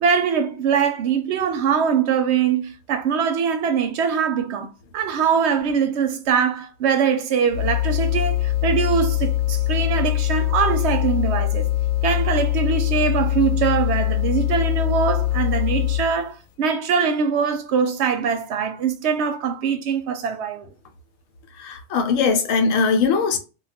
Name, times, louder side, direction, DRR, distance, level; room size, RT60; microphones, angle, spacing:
voice 1, 0.0-11.7 12.0-20.7, right 6 dB, 65° right, 0.8 m, -22 dB
sound 1, 7.5-16.2, left 14 dB, 70° left, 0.9 m, -22 dB
voice 2, 21.6-23.4, left 5 dB, 90° left, 1.0 m, -20 dB
2.3 x 2.3 x 3.9 m
omnidirectional pair, 1.3 m